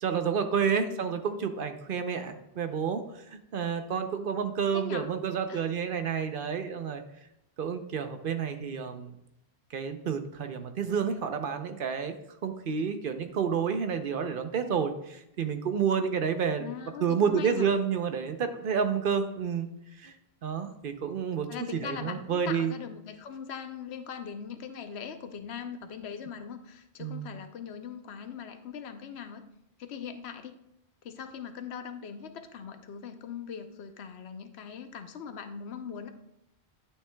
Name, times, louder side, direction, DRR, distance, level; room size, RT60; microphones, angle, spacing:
voice 1, 0.0-3.0 3.3-7.0 7.6-9.1 9.7-12.1 12.4-16.7 17.0-19.7 20.0-20.1 20.4-21.5 21.8-22.7 27.0-27.4, right 6 dB, 60° right, 8 dB, 0.8 m, -30 dB
voice 2, 0.8-1.1 4.7-5.1 5.5-5.7 12.7-12.9 16.6-17.7 21.5-29.4 29.8-30.6 31.0-36.1, left 7 dB, 75° left, 8 dB, 1.0 m, -41 dB
11.0 x 6.6 x 2.2 m, 0.84 s
omnidirectional pair, 1.1 m